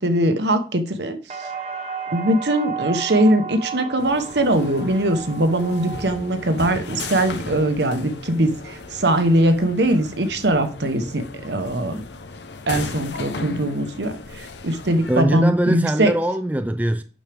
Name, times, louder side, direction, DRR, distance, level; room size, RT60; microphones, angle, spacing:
voice 1, 0.0-1.2 2.1-12.0 12.7-16.1, right 1 dB, 75° right, 1.1 m, -21 dB
sound 1, 1.3-9.2 9.6-10.2, right 6 dB, 35° right, 1.2 m, -35 dB
sound 2, 4.0-15.2, left 3 dB, 75° left, 0.9 m, -36 dB
voice 2, 15.1-17.0, right 1 dB, 10° right, 0.4 m, -21 dB
8.8 x 6.4 x 3.5 m
head